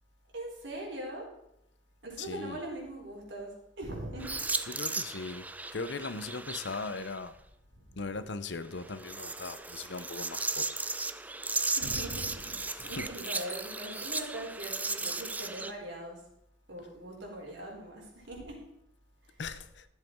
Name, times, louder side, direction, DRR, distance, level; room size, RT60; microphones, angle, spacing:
voice 1, 0.3-1.3 2.0-3.5 3.8-4.4 7.9-8.0 11.8-16.2 16.7-18.6, right 1 dB, 75° right, -2 dB, 4.1 m, -41 dB
voice 2, 2.2-2.6 4.7-7.3 8.0-10.7 12.7-13.1 19.4-19.9, left 3 dB, 65° left, 12 dB, 0.7 m, -39 dB
sound 1, 4.2-7.2 8.8-15.7, right 3 dB, 10° right, 0.4 m, -36 dB
13.5 x 7.7 x 4.6 m, 0.81 s
head